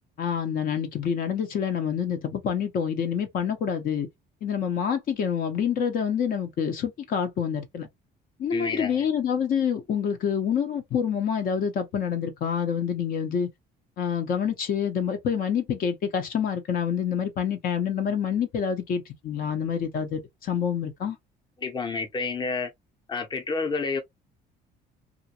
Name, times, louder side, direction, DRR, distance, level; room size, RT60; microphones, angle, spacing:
voice 1, 0.2-4.1 4.4-7.9 8.4-13.5 14.0-21.2, left 7 dB, 60° left, 0.8 m, -27 dB
voice 2, 8.5-9.0 21.6-22.7 23.1-24.0, left 4 dB, 25° left, 0.8 m, -29 dB
2.5 x 2.2 x 2.7 m
cardioid pair, 110°, 17 cm